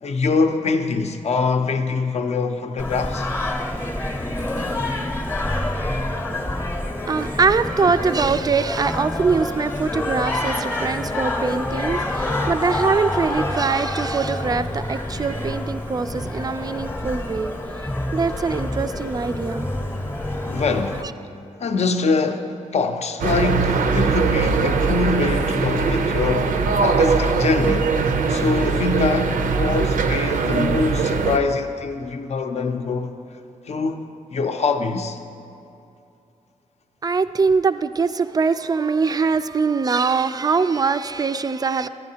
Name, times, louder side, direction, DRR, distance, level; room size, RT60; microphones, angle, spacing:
voice 1, 0.0-3.3 20.5-21.1 21.6-27.9 28.3-33.1 33.6-35.2, left 4 dB, 50° left, 0.5 m, -24 dB
Singing, 2.8-21.0, left 1 dB, 15° left, 0.8 m, -27 dB
voice 2, 7.1-17.5 18.1-19.7 20.4-20.6 37.0-41.9, right 4 dB, 30° right, 0.3 m, -22 dB
sound 1, 23.2-31.4, right 4 dB, 75° right, 0.5 m, -21 dB
10.5 x 10.5 x 2.8 m
cardioid pair, 70°, 14 cm